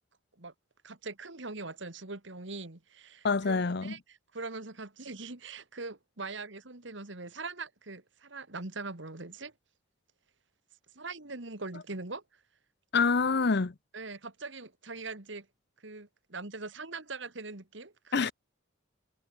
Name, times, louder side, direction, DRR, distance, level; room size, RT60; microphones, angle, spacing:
voice 1, 0.8-9.5 11.0-12.2 13.9-15.5 15.8-18.3, right 3 dB, 65° right, 2.1 m, -42 dB
voice 2, 3.2-4.0 12.9-13.7 18.1-18.3, left 4 dB, 55° left, 0.7 m, -26 dB
head